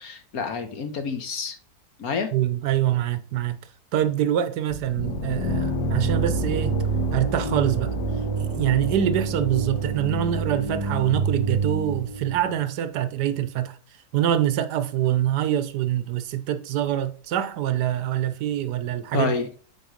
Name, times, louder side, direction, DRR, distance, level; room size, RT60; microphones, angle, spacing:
voice 1, 0.0-1.6 2.0-2.3 19.1-19.5, left 5 dB, 60° left, 1.5 m, -28 dB
voice 2, 2.3-3.6 3.9-6.8 7.1-7.9 8.4-13.8 14.1-19.3, right 11 dB, 80° right, 1.3 m, -25 dB
sound 1, 4.7-12.6, right 3 dB, 80° left, 1.8 m, -27 dB
8.0 x 4.6 x 5.1 m
omnidirectional pair, 1.8 m